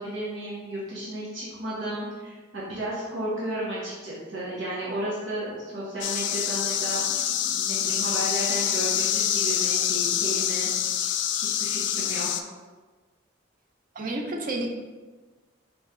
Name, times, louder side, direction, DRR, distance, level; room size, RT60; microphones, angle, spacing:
voice 1, 0.0-10.7 11.3-12.5, right 1 dB, 80° right, -7 dB, 1.0 m, -33 dB
sound 1, 6.0-12.4, left 10 dB, 65° left, 0.3 m, -26 dB
voice 2, 13.9-14.7, right 2 dB, 45° right, 2 dB, 0.5 m, -30 dB
3.9 x 3.1 x 3.6 m, 1.3 s
head